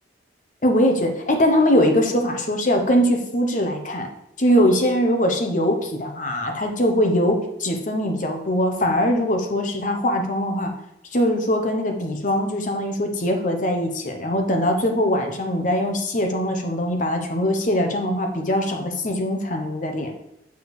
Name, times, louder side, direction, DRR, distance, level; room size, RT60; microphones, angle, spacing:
voice 1, 0.6-4.1 4.4-10.7 11.1-20.1, equal, 40° left, 3 dB, 0.9 m, -21 dB
6.6 x 4.7 x 4.8 m, 0.83 s
head